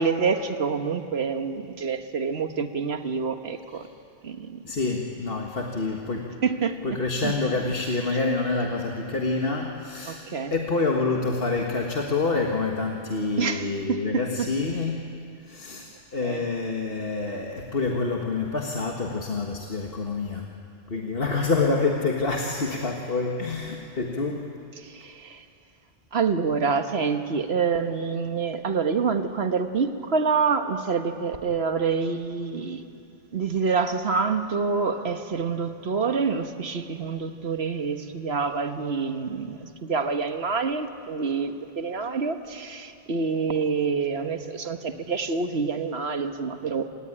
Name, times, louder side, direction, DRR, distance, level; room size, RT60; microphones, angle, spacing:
voice 1, 0.0-3.9 4.2-4.6 6.4-6.8 7.2-7.3 10.1-10.5 13.4-14.5 16.2-16.4 24.8-25.4 26.1-32.8 33.3-46.8, right 5 dB, 75° right, 7 dB, 1.6 m, -27 dB
voice 2, 4.6-6.4 6.8-10.2 10.5-20.5 20.9-24.6, left 3 dB, 60° left, 1 dB, 1.8 m, -27 dB
27.0 x 19.0 x 9.9 m, 2.5 s
omnidirectional pair, 1.1 m